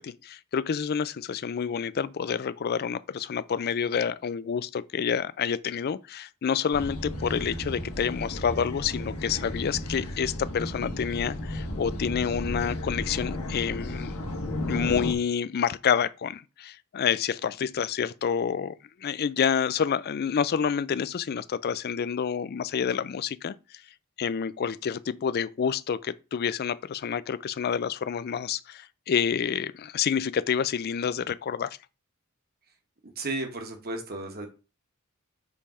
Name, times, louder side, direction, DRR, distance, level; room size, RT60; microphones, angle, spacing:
voice 1, 0.0-14.1 14.7-18.8 19.0-23.5 24.2-31.8, left 7 dB, 45° left, 0.3 m, -28 dB
sound 1, 6.7-15.1, left 1 dB, 75° left, 1.4 m, -34 dB
voice 2, 33.2-34.5, right 2 dB, 45° right, 1.3 m, -33 dB
5.2 x 3.4 x 5.5 m
head